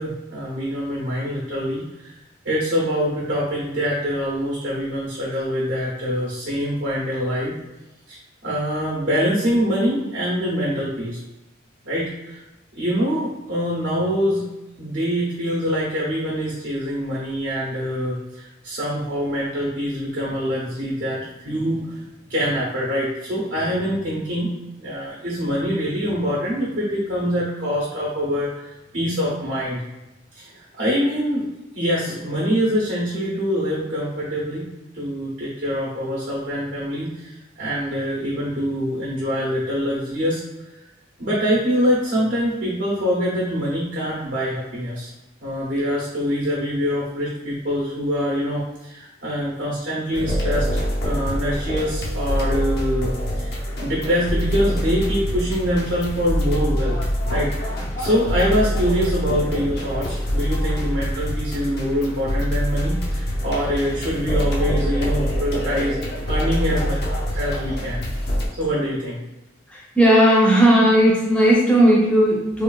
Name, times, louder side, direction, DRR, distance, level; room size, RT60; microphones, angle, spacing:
voice 1, 0.0-1.8 2.4-7.5 8.1-8.2 8.4-11.2 11.8-12.4 12.8-14.5 14.8-28.7 28.9-29.8 30.3-31.4 31.7-34.7 34.9-40.4 41.2-45.1 45.4-50.7 51.0-53.5 53.8-57.0 57.3-66.0 66.3-68.0 68.6-69.2, equal, 55° right, -6 dB, 0.7 m, -24 dB
sound 1, 50.1-68.5, equal, 55° left, 0.6 m, -25 dB
voice 2, 70.0-72.6, equal, 5° left, -4 dB, 0.6 m, -15 dB
3.2 x 2.4 x 2.2 m, 1.0 s
head